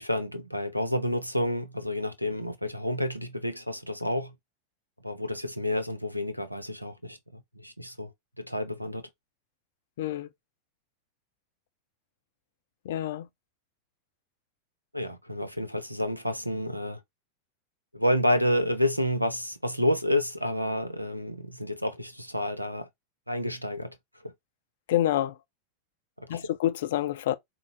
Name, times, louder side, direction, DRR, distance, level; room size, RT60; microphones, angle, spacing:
voice 1, 0.0-4.3 5.0-9.1 14.9-17.0 17.9-22.9 23.3-24.0 24.2-24.3 26.2-26.5, left 1 dB, 90° right, 0.6 m, -29 dB
voice 2, 10.0-10.3 12.9-13.3 24.9-25.3 26.3-27.3, left 13 dB, 55° left, 0.5 m, -27 dB
4.7 x 2.0 x 4.0 m
figure-of-eight pair, 90°, 0 cm